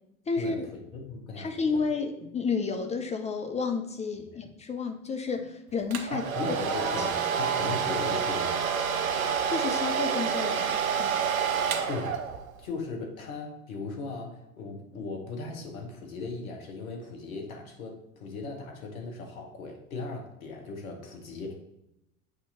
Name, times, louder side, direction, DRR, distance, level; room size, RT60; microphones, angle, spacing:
voice 1, 0.3-0.7 1.4-6.2 9.5-11.2, left 4 dB, 15° left, 6 dB, 0.4 m, -31 dB
voice 2, 0.9-1.9 4.3-4.4 6.1-8.6 11.9-12.2 12.6-21.5, left 3 dB, 75° left, 2 dB, 1.4 m, -38 dB
Domestic sounds home sounds, 5.9-12.6, right 7 dB, 80° right, 0.7 m, -28 dB
7.8 x 2.9 x 4.2 m, 0.86 s
hypercardioid pair, 80°, 42 cm